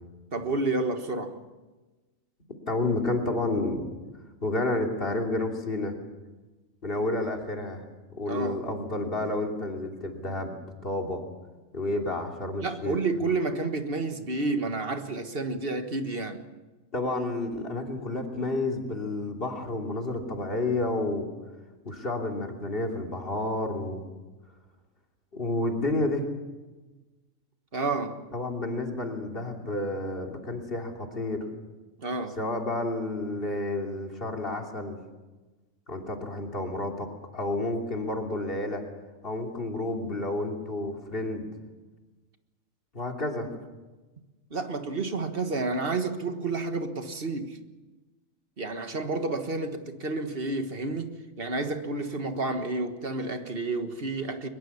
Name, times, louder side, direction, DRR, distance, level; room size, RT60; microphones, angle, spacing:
voice 1, 0.3-1.4 8.2-8.6 12.6-16.4 27.7-28.2 32.0-32.4 44.5-47.6 48.6-54.5, right 3 dB, 45° right, 1.7 m, -30 dB
voice 2, 2.7-3.9 4.4-5.9 6.8-7.8 8.1-10.5 10.8-11.2 11.7-13.0 16.9-21.3 21.8-24.0 25.3-26.3 28.3-31.4 32.4-35.0 35.9-37.1 37.3-38.8 39.2-41.4 42.9-43.5, left 2 dB, 45° left, 3.2 m, -30 dB
22.5 x 21.5 x 7.1 m
omnidirectional pair, 1.4 m